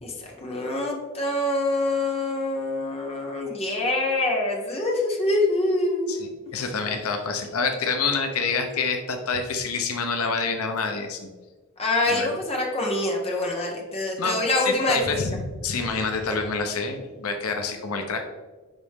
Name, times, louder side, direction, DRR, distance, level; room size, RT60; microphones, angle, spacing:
voice 1, 0.0-6.2 6.6-6.7 11.8-15.0, left 2 dB, 30° left, 0 dB, 1.3 m, -25 dB
voice 2, 6.1-11.3 12.1-12.3 14.2-14.4 14.7-18.3, left 4 dB, 85° left, 5 dB, 0.8 m, -27 dB
10.5 x 4.1 x 3.6 m, 1.3 s
head